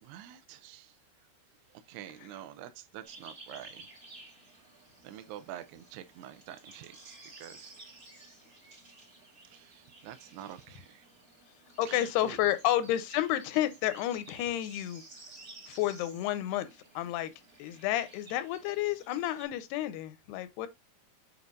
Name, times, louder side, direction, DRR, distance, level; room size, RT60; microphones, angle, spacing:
voice 1, 0.0-0.9 1.7-3.9 5.0-7.8 9.5-11.1 11.9-12.4, right 12 dB, 85° right, 2.6 m, -47 dB
sound 1, 3.0-19.4, right 2 dB, 30° right, 1.0 m, -54 dB
voice 2, 11.8-15.0 15.7-16.7 17.0-17.3 17.6-20.7, left 13 dB, 85° left, 2.8 m, -30 dB
8.0 x 5.2 x 2.4 m
omnidirectional pair, 4.6 m